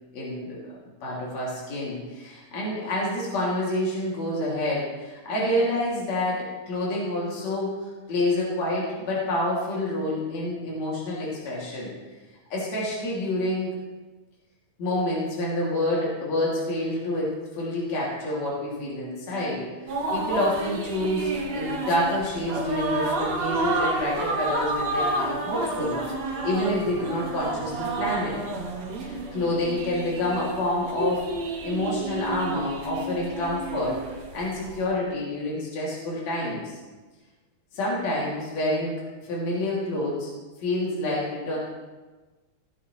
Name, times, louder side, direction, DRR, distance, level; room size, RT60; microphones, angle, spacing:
voice 1, 0.1-7.8 8.1-11.9 12.5-13.7 14.8-19.6 20.1-25.9 26.4-28.4 29.0-31.3 31.6-34.0 34.3-36.8 37.7-39.0 39.3-40.3 40.6-41.6, left 1 dB, 60° left, -5 dB, 3.9 m, -28 dB
sound 1, 19.9-34.8, right 2 dB, 55° right, 2.1 m, -30 dB
17.5 x 8.4 x 3.2 m, 1.2 s
omnidirectional pair, 3.6 m